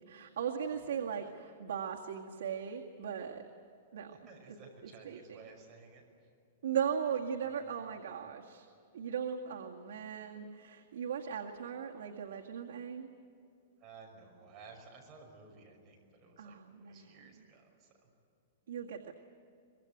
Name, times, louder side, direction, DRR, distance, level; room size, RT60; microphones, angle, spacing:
voice 1, 0.0-3.5 3.9-4.1 5.1-5.4 6.6-8.7 8.9-13.1 16.4-17.2 18.7-19.1, right 7 dB, 85° right, 0 dB, 2.0 m, -38 dB
voice 2, 1.0-1.3 4.0-6.3 7.4-7.7 8.1-8.2 13.8-18.1, right 4 dB, 20° right, 0 dB, 6.0 m, -56 dB
24.5 x 22.0 x 9.4 m, 2.5 s
supercardioid pair, 165°, 0 cm